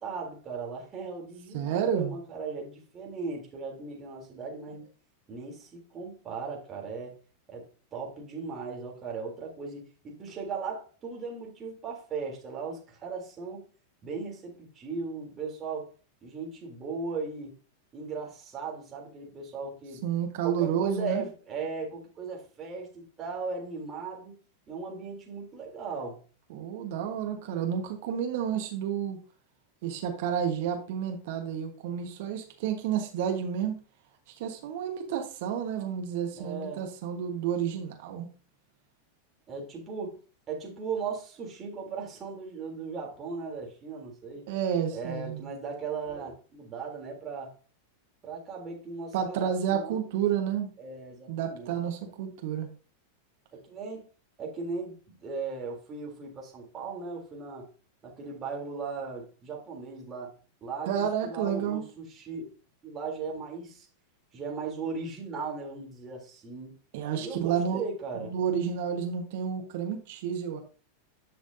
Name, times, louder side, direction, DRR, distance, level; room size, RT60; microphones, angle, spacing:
voice 1, 0.0-4.8 5.3-7.2 7.5-13.7 14.0-15.9 16.2-17.5 17.9-20.0 20.4-24.4 24.7-26.2 36.3-36.8 39.5-40.2 40.5-44.4 44.9-47.6 48.2-50.0 50.8-51.8 53.5-54.1 54.4-57.7 58.0-60.3 60.6-62.5 62.8-63.9 64.3-66.7 67.2-68.3, right 4 dB, 25° right, 3.3 m, -37 dB
voice 2, 1.5-2.1 20.0-21.3 26.5-29.2 29.8-33.8 34.3-38.3 44.5-45.4 49.1-50.7 51.3-52.7 60.9-61.8 66.9-67.8 68.1-70.6, right 8 dB, 50° right, 1.3 m, -30 dB
11.0 x 6.0 x 2.7 m
figure-of-eight pair, 90°, 0 cm